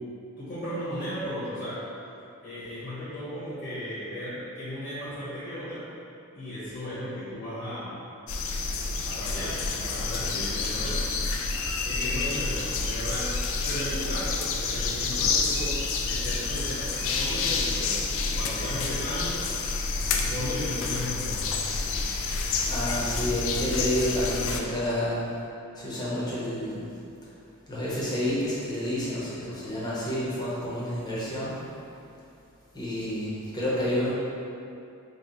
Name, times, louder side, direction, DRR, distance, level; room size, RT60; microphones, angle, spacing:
voice 1, 0.4-1.9 2.4-5.9 6.3-8.0 9.0-11.4 11.8-13.3 13.6-18.0 18.3-19.4 20.1-21.5, equal, 50° left, -12 dB, 1.1 m, -35 dB
sound 1, 8.3-24.6, left 4 dB, 65° left, 0.4 m, -29 dB
voice 2, 22.6-25.4 25.7-26.9 27.7-31.6 32.7-34.1, left 1 dB, 20° left, -8 dB, 0.9 m, -29 dB
3.9 x 2.3 x 4.3 m, 2.6 s
head